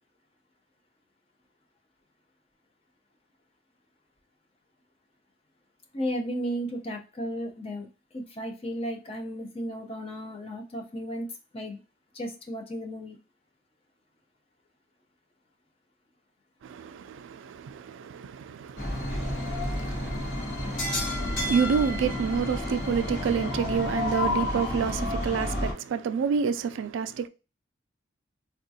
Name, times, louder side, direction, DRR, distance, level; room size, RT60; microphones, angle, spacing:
voice 1, 5.9-7.9 8.1-11.8 12.1-13.2, equal, 30° left, 0.6 m, -34 dB
voice 2, 16.6-27.3, right 6 dB, 85° right, 0.3 m, -29 dB
sound 1, 18.8-25.7, left 1 dB, 65° left, 1.7 m, -30 dB
3.6 x 2.3 x 2.7 m
head